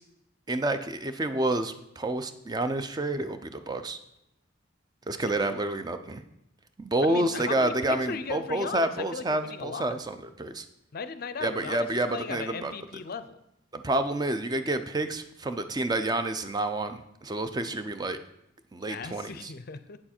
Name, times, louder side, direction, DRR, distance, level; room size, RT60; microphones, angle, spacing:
voice 1, 0.5-4.0 5.1-6.2 6.8-10.7 11.4-12.7 13.7-18.2 18.7-19.5, right 2 dB, 20° right, 9 dB, 0.5 m, -29 dB
voice 2, 7.1-9.9 10.9-13.3 18.9-20.0, left 5 dB, 50° left, 12 dB, 0.5 m, -37 dB
8.6 x 7.0 x 4.4 m, 0.82 s
head